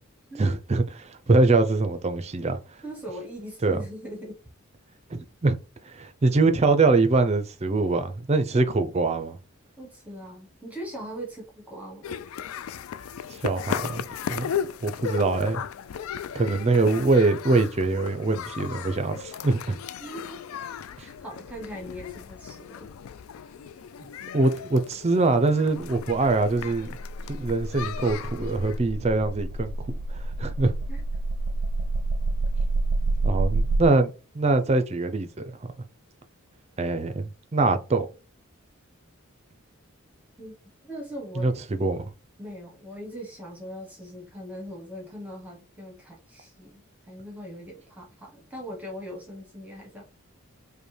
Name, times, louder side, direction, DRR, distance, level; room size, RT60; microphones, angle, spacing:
voice 1, 0.4-2.6 3.6-3.8 5.1-5.6 5.9-9.4 13.4-14.0 14.3-14.5 14.8-15.6 16.3-19.8 24.3-27.0 27.4-30.7 33.2-35.5 36.8-38.1 41.4-41.5 41.8-42.0, right 3 dB, 30° right, 0.4 m, -23 dB
voice 2, 2.8-4.4 9.8-12.1 20.0-20.5 21.0-22.9 30.9-31.0 40.4-40.5 40.8-41.6 42.4-50.0, equal, 5° right, 0.9 m, -40 dB
sound 1, 12.0-28.8, left 8 dB, 70° left, 0.3 m, -36 dB
sound 2, 25.8-33.8, right 2 dB, 85° right, 0.5 m, -28 dB
5.2 x 2.2 x 3.2 m
head